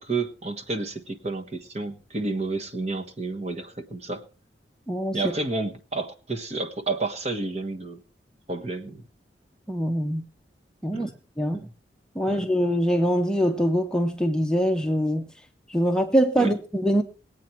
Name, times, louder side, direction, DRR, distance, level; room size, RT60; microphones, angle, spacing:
voice 1, 0.0-4.2 5.1-8.0 8.5-9.1 10.9-11.2 11.5-11.6 12.3-12.5 16.4-16.5, right 3 dB, 35° right, 1.3 m, -30 dB
voice 2, 4.9-5.2 9.7-10.2 10.8-11.1 11.4-11.7 12.1-15.3 15.7-17.0, equal, 5° left, 0.8 m, -23 dB
19.5 x 8.6 x 4.5 m
head